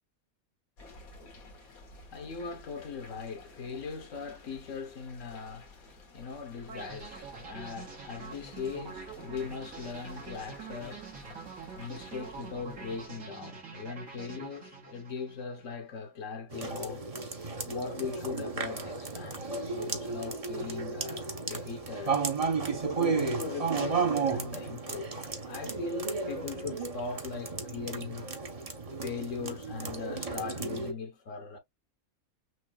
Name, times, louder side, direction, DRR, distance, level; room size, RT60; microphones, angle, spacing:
sound 1, 0.8-13.1, left 2 dB, 80° left, 1.9 m, -53 dB
voice 1, 1.3-11.2 11.7-17.1 17.6-22.2 22.9-28.3 29.0-31.6, left 5 dB, 65° left, 1.3 m, -40 dB
sound 2, 6.7-15.7, right 5 dB, 75° right, 3.0 m, -46 dB
sound 3, 16.5-30.9, right 4 dB, 30° right, 0.9 m, -33 dB
6.3 x 2.7 x 2.3 m
omnidirectional pair, 1.5 m